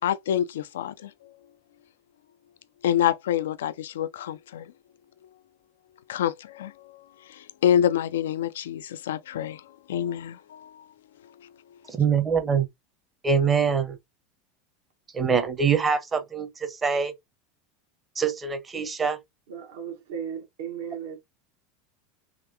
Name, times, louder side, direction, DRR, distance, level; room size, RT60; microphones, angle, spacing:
voice 1, 0.0-1.1 2.8-4.7 6.1-10.9 11.4-11.5, left 10 dB, 70° left, 0.3 m, -27 dB
voice 2, 11.9-12.7 13.2-14.0 15.1-17.1 18.2-19.2, right 6 dB, 20° right, 0.8 m, -24 dB
voice 3, 19.5-21.2, right 8 dB, 65° right, 1.1 m, -36 dB
3.6 x 2.9 x 2.7 m
figure-of-eight pair, 80°, 0 cm